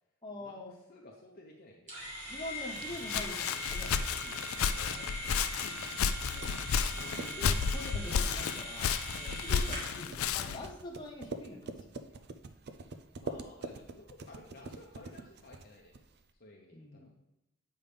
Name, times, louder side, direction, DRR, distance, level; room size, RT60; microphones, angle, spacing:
voice 1, 0.2-0.8 2.3-4.5 6.3-6.6 7.0-12.2 16.7-17.1, left 1 dB, 20° left, -2 dB, 1.3 m, -45 dB
voice 2, 0.9-2.1 4.7-5.7 13.2-15.9 16.4-17.1, left 2 dB, 45° left, -1 dB, 0.8 m, -54 dB
sound 1, 1.9-10.0, equal, 35° right, 2.2 m, -42 dB
Walk footsteps, 2.8-10.7, left 6 dB, 90° left, 0.4 m, -32 dB
sound 2, 5.3-16.3, right 3 dB, 50° right, 0.5 m, -46 dB
8.2 x 5.3 x 3.4 m, 0.93 s
head